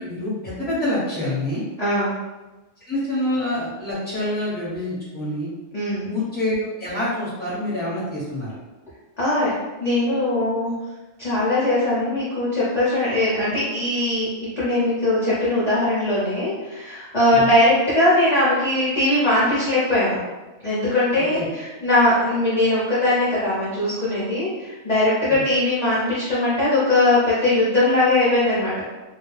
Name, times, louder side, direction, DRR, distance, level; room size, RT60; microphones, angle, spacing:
voice 1, 0.0-1.6 2.9-5.5 6.1-8.6 17.3-17.5 21.1-21.5 25.3-25.4, left 1 dB, 10° left, -9 dB, 0.8 m, -26 dB
voice 2, 1.8-2.1 5.7-6.1 9.2-9.5 9.8-10.7 11.2-14.3 14.6-20.2 20.6-28.7, left 1 dB, 40° left, -10 dB, 0.6 m, -20 dB
2.3 x 2.1 x 3.2 m, 1.1 s
omnidirectional pair, 1.5 m